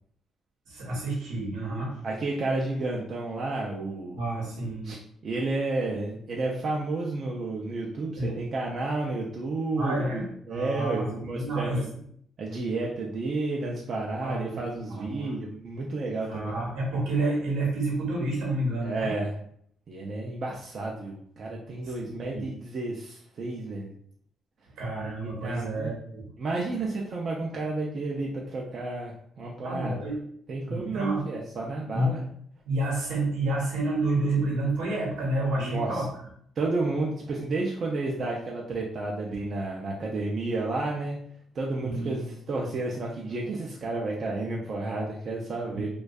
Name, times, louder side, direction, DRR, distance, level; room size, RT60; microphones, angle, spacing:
voice 1, 0.7-2.0 4.1-4.9 8.2-8.3 9.7-11.9 14.2-15.4 16.2-19.1 21.8-22.6 24.8-26.3 29.6-30.2 30.7-31.2 31.9-32.1 32.7-36.1 41.8-42.2 45.7-45.8, right 2 dB, 90° right, -3 dB, 0.8 m, -29 dB
voice 2, 2.0-4.2 4.8-5.0 5.2-11.9 12.4-16.5 18.8-19.3 19.9-23.9 25.4-25.9 26.4-30.0 30.5-32.2 35.6-36.0 36.6-41.2 41.5-45.9, right 2 dB, 50° right, -2 dB, 0.4 m, -31 dB
2.5 x 2.2 x 2.2 m, 0.66 s
cardioid pair, 90°, 0 cm